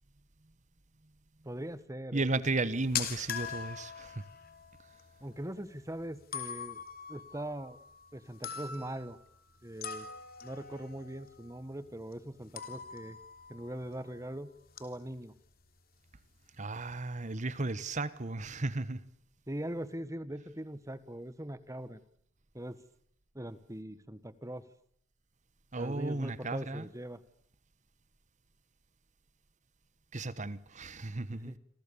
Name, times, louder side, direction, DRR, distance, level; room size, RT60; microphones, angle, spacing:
voice 1, 1.4-2.3 5.2-6.8 7.1-7.8 8.1-9.2 9.6-10.1 10.4-13.2 13.5-14.5 14.8-15.3 19.5-22.0 22.5-22.8 23.3-24.6 25.8-27.2 31.3-31.6, right 1 dB, 15° right, 1.4 m, -41 dB
voice 2, 2.1-4.2 16.6-19.0 25.7-26.8 30.1-31.6, right 2 dB, 35° right, 1.2 m, -34 dB
sound 1, 2.5-14.4 14.7-15.1 15.4-15.5 16.1-16.2 16.4-17.0, left 8 dB, 45° left, 3.3 m, -43 dB
27.5 x 27.0 x 7.1 m
head